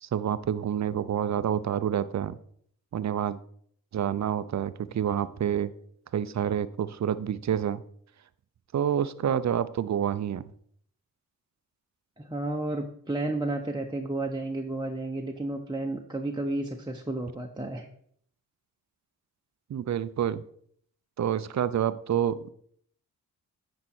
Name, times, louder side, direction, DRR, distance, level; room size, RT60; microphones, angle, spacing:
voice 1, 0.0-2.4 2.9-3.4 3.9-5.7 6.1-7.8 8.7-10.5 19.7-20.4 21.2-22.5, right 9 dB, 40° right, 15 dB, 0.6 m, -28 dB
voice 2, 12.2-17.9, right 2 dB, 10° right, 0 dB, 0.9 m, -32 dB
9.7 x 4.4 x 4.4 m, 0.63 s
supercardioid pair, 45°, 41 cm